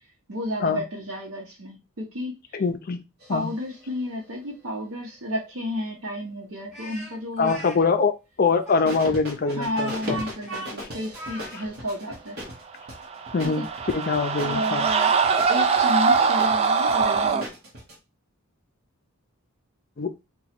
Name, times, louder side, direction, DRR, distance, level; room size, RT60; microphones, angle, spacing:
voice 1, 0.3-2.6 3.3-8.0 8.8-8.9 9.6-12.4 13.5-13.7 14.4-15.1 15.5-17.5, left 1 dB, 75° right, -4 dB, 0.9 m, -32 dB
voice 2, 2.5-3.0 3.3-3.5 7.4-8.1 8.4-10.2 13.3-14.9 20.0-20.1, left 4 dB, 45° left, 8 dB, 0.5 m, -24 dB
sound 1, 3.2-4.7 8.9-18.0, equal, 50° right, 1.0 m, -39 dB
Speech, 6.7-7.8 8.6-11.7, right 2 dB, ahead, 1.7 m, -39 dB
sound 2, 13.0-17.4, right 5 dB, 30° right, 0.3 m, -22 dB
3.0 x 2.3 x 4.2 m, 0.26 s
head